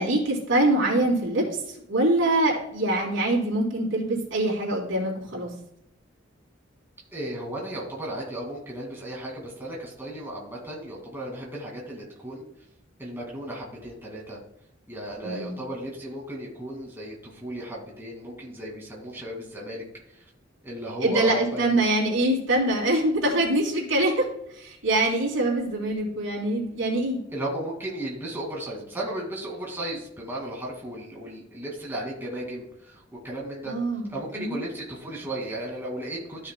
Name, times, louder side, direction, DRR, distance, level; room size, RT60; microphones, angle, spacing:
voice 1, 0.0-5.5 15.2-15.6 21.0-24.3 24.5-27.2 33.7-34.6, right 1 dB, 85° right, -4 dB, 3.5 m, -24 dB
voice 2, 7.1-12.5 13.0-14.4 14.9-20.3 20.6-21.8 27.3-33.7 34.1-36.5, right 1 dB, 10° right, -3 dB, 2.1 m, -35 dB
13.5 x 6.5 x 2.2 m, 0.78 s
head